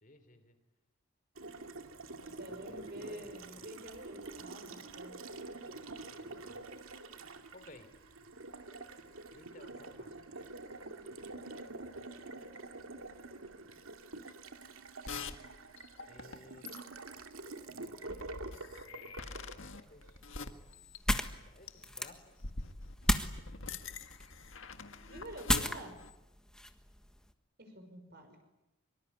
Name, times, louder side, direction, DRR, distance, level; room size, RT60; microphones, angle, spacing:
voice 1, 0.0-0.5 2.5-3.6 6.0-6.7 7.5-7.9 9.3-10.5 16.1-16.7 17.7-18.6 18.8-20.2 20.6-20.7 21.1-22.4 23.0-23.2, left 1 dB, 40° left, 8 dB, 3.3 m, -58 dB
Water tap faucet, 1.4-20.5, right 3 dB, 75° right, 2.3 m, -47 dB
voice 2, 2.2-5.1 25.1-26.0 27.6-28.4, equal, 45° right, 6 dB, 6.0 m, -48 dB
sound 1, 15.1-15.3 15.8-16.4 16.7-17.0 18.1-21.3 21.7-21.9 22.4-26.1, left 4 dB, 65° left, 1.8 m, -45 dB
sound 2, 19.8-27.3, left 1 dB, 5° left, 1.4 m, -36 dB
24.5 x 24.0 x 9.7 m, 0.93 s
head